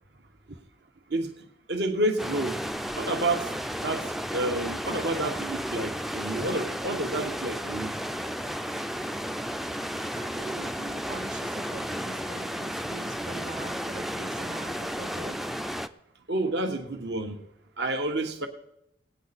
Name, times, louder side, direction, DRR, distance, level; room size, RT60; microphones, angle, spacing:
voice 1, 1.7-2.6 3.0-3.5 3.8-8.0 16.3-17.4 17.8-18.5, right 2 dB, 70° right, 1.3 m, -29 dB
sound 1, 2.2-15.9, equal, ahead, 0.4 m, -33 dB
voice 2, 10.2-15.4, right 2 dB, 45° right, 1.0 m, -42 dB
20.0 x 8.8 x 4.2 m
head